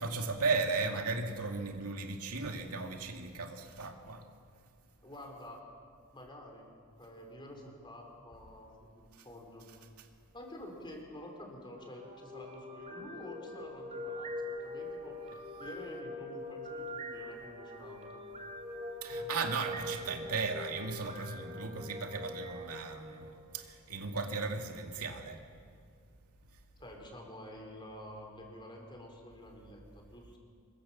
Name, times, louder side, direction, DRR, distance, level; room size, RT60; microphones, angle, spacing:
voice 1, 0.0-4.2 19.0-25.4, right 4 dB, 85° right, 3 dB, 2.4 m, -36 dB
voice 2, 5.0-5.6 6.1-6.7 7.0-9.7 10.3-18.2 26.8-30.4, left 1 dB, 20° left, 1 dB, 4.4 m, -49 dB
sound 1, 11.6-23.7, left 1 dB, 35° right, 3.0 m, -43 dB
26.0 x 22.5 x 7.3 m, 2.2 s
head